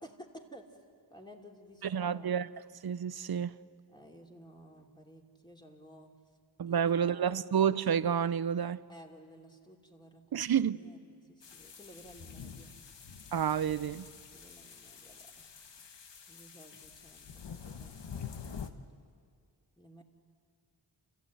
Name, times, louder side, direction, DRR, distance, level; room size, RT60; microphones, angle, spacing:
voice 1, 0.0-0.8 1.1-2.4 3.9-6.1 6.7-7.4 8.9-12.8 14.3-15.8 16.3-18.4 18.7-18.8 19.8-20.0, equal, 10° left, 2.8 m, -54 dB
voice 2, 1.8-2.5 2.8-3.5 6.6-8.8 10.3-10.8 13.3-14.1, right 8 dB, 60° right, 0.7 m, -29 dB
sound 1, 11.4-18.7, left 7 dB, 75° left, 1.3 m, -47 dB
30.0 x 15.0 x 9.2 m
wide cardioid pair, 80°, 43 cm